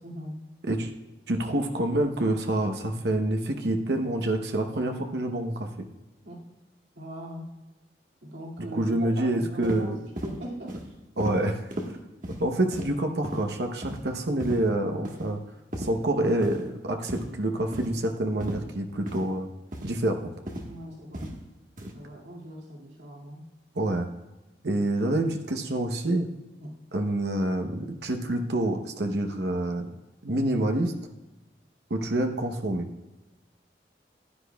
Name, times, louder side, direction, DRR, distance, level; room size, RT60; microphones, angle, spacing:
voice 1, 0.0-0.4 6.2-6.4 7.0-7.5 8.2-9.9 10.2-10.8 11.2-11.4 15.7-15.9 20.6-21.3 21.9-23.4 26.6-26.7, equal, 85° right, -4 dB, 2.3 m, -39 dB
voice 2, 1.3-5.9 8.7-10.0 11.2-11.6 12.4-15.4 15.8-19.5 19.8-20.3 23.7-24.1 24.6-26.3 26.9-29.9 30.2-30.9 31.9-32.9, right 1 dB, 70° right, 4 dB, 0.9 m, -27 dB
sound 1, 9.6-9.8 10.2-10.4 10.7-10.9 11.2-11.4 11.7-11.9 12.2-12.4 12.7-12.9 13.2-13.4 13.8-14.0 14.4-14.6 15.0-15.3 15.7-15.9 16.4-16.6 17.1-17.3 17.7-17.9 18.4-18.6 19.1-19.2 19.7-19.9 20.5-20.7 21.1-21.3 21.8-21.9, right 1 dB, 50° right, 1.4 m, -35 dB
15.0 x 10.0 x 2.3 m, 1.1 s
head